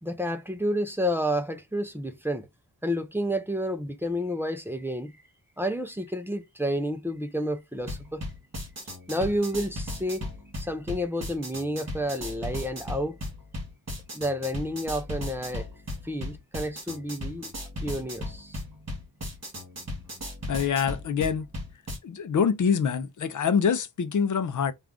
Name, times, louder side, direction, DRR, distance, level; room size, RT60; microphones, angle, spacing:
voice 1, 0.0-2.5 2.8-5.1 5.6-8.2 9.1-10.3 10.6-13.2 14.1-15.7 16.0-17.5 17.8-18.6, equal, 5° right, 0.4 m, -30 dB
sound 1, 7.8-22.0, left 1 dB, 40° right, 1.7 m, -37 dB
voice 2, 20.5-21.5 22.0-24.7, left 6 dB, 50° left, 0.5 m, -25 dB
3.5 x 2.4 x 3.6 m
wide cardioid pair, 165°, 39 cm